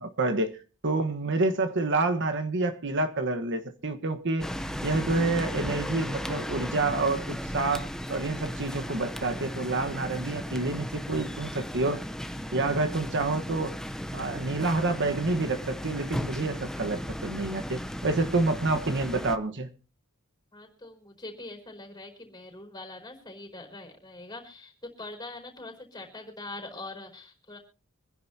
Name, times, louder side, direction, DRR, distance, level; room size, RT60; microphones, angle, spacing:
voice 1, 0.0-4.5 4.8-12.0 12.5-13.8 14.1-19.7, right 2 dB, 60° right, 1.3 m, -28 dB
sound 1, 4.4-19.4, equal, 5° left, 0.8 m, -36 dB
voice 2, 20.5-27.6, left 2 dB, 20° left, 4.7 m, -43 dB
25.5 x 10.5 x 2.8 m
head